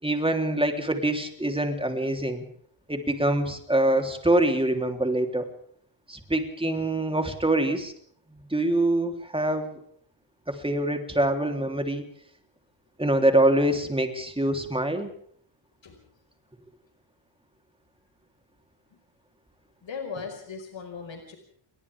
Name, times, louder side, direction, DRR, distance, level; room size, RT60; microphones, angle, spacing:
voice 1, 0.0-2.4 2.9-5.5 6.1-7.9 8.3-9.8 10.5-12.1 13.0-15.1, right 1 dB, 10° right, 4 dB, 3.6 m, -25 dB
voice 2, 19.8-21.4, left 5 dB, 70° left, 4 dB, 5.3 m, -37 dB
29.5 x 24.0 x 3.6 m, 0.63 s
wide cardioid pair, 140°, 46 cm